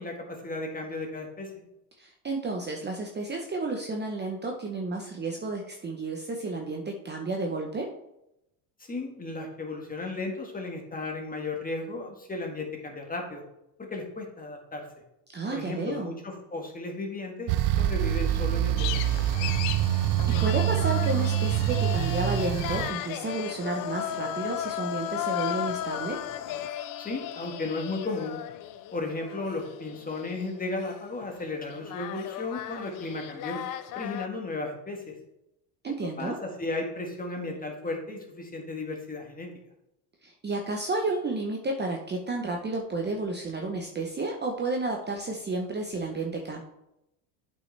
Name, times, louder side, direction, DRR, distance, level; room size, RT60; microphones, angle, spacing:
voice 1, 0.0-1.5 8.9-13.4 13.9-14.8 15.5-19.5 27.0-28.4 28.9-33.6 33.9-35.1 36.2-39.5, left 3 dB, 20° left, 1 dB, 1.6 m, -35 dB
voice 2, 2.0-7.9 15.3-16.2 20.3-26.2 35.8-36.4 40.2-46.6, right 3 dB, 20° right, 1 dB, 0.8 m, -31 dB
sound 1, 17.5-22.9, right 12 dB, 60° right, 0.5 m, -25 dB
sound 2, 18.8-26.7, left 13 dB, 80° left, 0.7 m, -41 dB
sound 3, 20.0-34.3, left 11 dB, 45° left, 0.5 m, -36 dB
8.4 x 5.4 x 3.3 m, 0.85 s
supercardioid pair, 105°, 48 cm